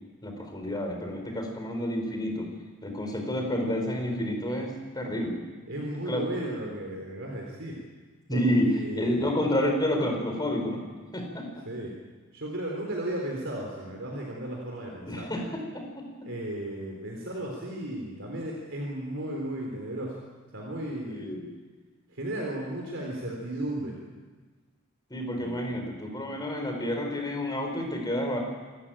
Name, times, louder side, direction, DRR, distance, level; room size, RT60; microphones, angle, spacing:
voice 1, 0.0-2.5 2.8-5.4 6.1-6.4 8.3-10.8 11.1-11.6 15.1-16.3 21.1-21.5 23.0-23.1 25.1-28.4, equal, 20° left, 3 dB, 4.5 m, -30 dB
voice 2, 5.7-7.8 8.3-9.4 11.7-12.0 12.3-15.3 16.2-20.2 20.5-21.3 22.1-24.0 25.4-25.6, right 1 dB, 65° right, -1 dB, 3.8 m, -35 dB
27.0 x 14.0 x 9.0 m, 1.4 s
head